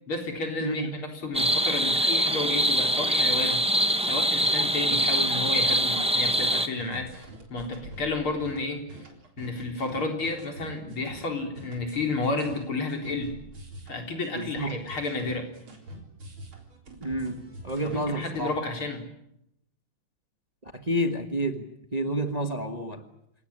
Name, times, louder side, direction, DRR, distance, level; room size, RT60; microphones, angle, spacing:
voice 1, 0.1-3.7 4.0-8.8 9.4-13.4 13.9-15.5 17.8-19.1, left 3 dB, 75° left, 4 dB, 4.8 m, -31 dB
voice 2, 0.6-1.0 14.3-14.8 17.0-18.7 20.6-21.7 21.9-23.0, right 1 dB, 20° right, 7 dB, 1.4 m, -30 dB
sound 1, 1.3-6.7, equal, 5° right, 0.7 m, -24 dB
sound 2, 6.2-18.6, right 1 dB, 65° right, 4.8 m, -45 dB
28.0 x 18.0 x 10.0 m, 0.81 s
omnidirectional pair, 2.4 m